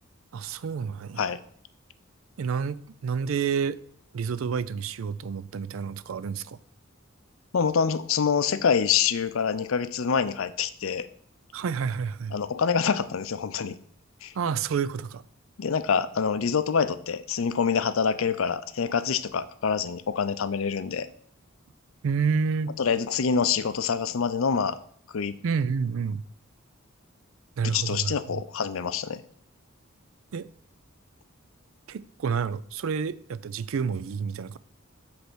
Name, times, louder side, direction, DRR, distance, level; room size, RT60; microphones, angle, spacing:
voice 1, 0.3-1.2 2.4-3.8 4.1-6.6 11.5-12.4 14.4-15.2 22.0-22.8 25.4-26.2 27.6-28.4 30.3-30.5 31.9-34.6, right 6 dB, 70° right, 0.4 m, -29 dB
voice 2, 7.5-11.1 12.3-13.8 14.2-14.3 15.6-21.1 22.8-24.8 25.1-25.4 27.6-29.2, left 6 dB, 70° left, 0.5 m, -26 dB
7.9 x 3.4 x 6.1 m
head